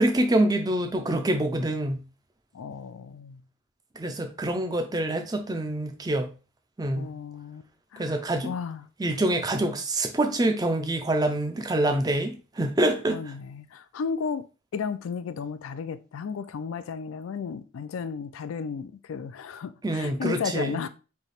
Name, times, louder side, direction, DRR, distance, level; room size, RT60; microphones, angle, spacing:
voice 1, 0.0-2.0 4.0-6.3 6.8-7.1 8.0-8.5 9.0-13.2 19.8-20.8, right 1 dB, 20° right, 0.4 m, -26 dB
voice 2, 2.5-3.4 6.9-7.6 7.9-8.8 13.1-14.5 14.7-20.9, left 6 dB, 80° left, 0.4 m, -34 dB
3.3 x 2.7 x 4.1 m
head